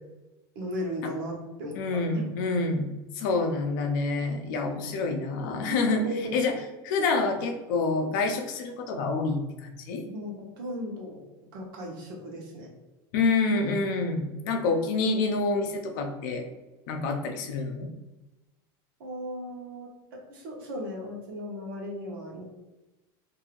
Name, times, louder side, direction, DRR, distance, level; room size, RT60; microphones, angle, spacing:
voice 1, 0.5-2.2 5.7-6.4 10.0-11.2 11.5-12.7 19.0-22.4, equal, 75° right, -1 dB, 0.9 m, -36 dB
voice 2, 1.8-6.0 6.3-6.5 6.8-10.0 13.1-16.5 16.9-17.9, left 3 dB, 60° left, 4 dB, 0.5 m, -27 dB
2.6 x 2.5 x 2.9 m, 1.1 s
supercardioid pair, 170°, 12 cm